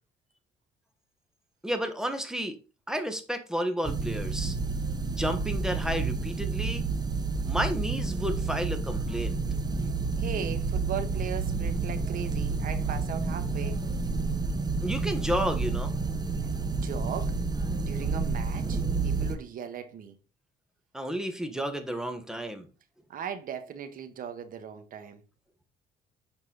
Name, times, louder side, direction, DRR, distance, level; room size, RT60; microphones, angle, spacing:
voice 1, 1.6-2.6 2.9-4.6 5.2-6.8 7.4-9.4 14.8-15.9 20.9-22.7, equal, 5° right, 1.5 m, -31 dB
sound 1, 3.8-19.4, right 4 dB, 25° right, 1.1 m, -30 dB
voice 2, 10.2-13.8 16.7-17.4 17.8-20.1 23.1-25.2, right 8 dB, 55° right, 1.5 m, -38 dB
7.5 x 5.4 x 4.1 m
cardioid pair, 110°, 17 cm